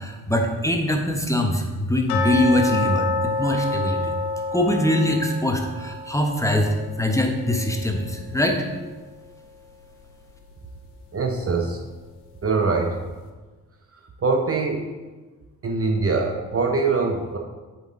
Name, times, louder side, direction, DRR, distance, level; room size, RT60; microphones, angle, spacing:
voice 1, 0.0-4.1 4.5-8.6, left 1 dB, 5° left, 2 dB, 1.2 m, -23 dB
sound 1, 2.1-8.9 9.2-9.3 9.8-9.9 10.5-10.6, left 3 dB, 85° left, 0.7 m, -29 dB
voice 2, 11.1-11.8 12.4-13.0 14.2-14.9 15.6-17.4, right 4 dB, 30° right, 2 dB, 0.9 m, -23 dB
7.8 x 4.6 x 3.9 m, 1.3 s
hypercardioid pair, 40°, 44 cm